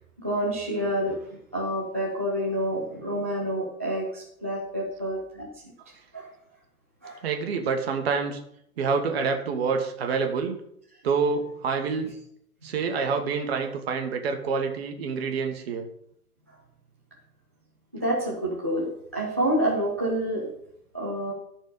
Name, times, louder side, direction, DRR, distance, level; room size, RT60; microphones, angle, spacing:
voice 1, 0.2-1.2 1.5-5.5 6.1-6.3 7.0-7.2 17.9-18.9 19.1-20.5 20.9-21.3, right 1 dB, 10° right, -5 dB, 0.3 m, -28 dB
voice 2, 7.2-8.4 8.8-10.6 11.0-12.1 12.6-15.9, right 5 dB, 45° right, 5 dB, 1.6 m, -27 dB
13.0 x 4.4 x 5.5 m, 0.72 s
figure-of-eight pair, 125°, 44 cm